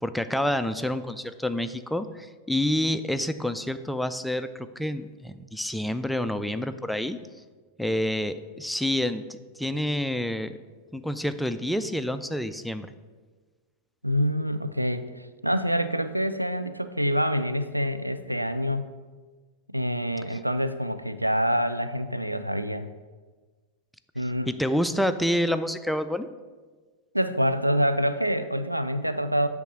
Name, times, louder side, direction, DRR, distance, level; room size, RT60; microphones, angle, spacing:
voice 1, 0.0-7.2 7.8-10.6 10.9-12.9 24.5-26.3, left 1 dB, ahead, 10 dB, 0.3 m, -28 dB
voice 2, 14.0-18.9 19.7-22.9 24.2-24.5 27.1-29.5, equal, 90° right, 11 dB, 0.3 m, -26 dB
8.3 x 3.6 x 6.0 m, 1.4 s
figure-of-eight pair, 90°, 0 cm